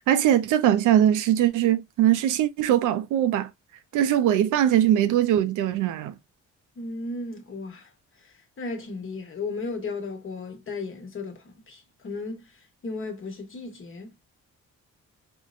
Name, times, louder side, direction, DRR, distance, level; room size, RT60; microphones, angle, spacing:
voice 1, 0.1-3.5 3.9-6.1, right 11 dB, 85° right, 0.5 m, -21 dB
voice 2, 6.8-7.9 8.6-12.5 12.8-14.1, left 3 dB, 45° left, 1.0 m, -35 dB
4.4 x 2.1 x 2.3 m
cardioid pair, 90°, 30 cm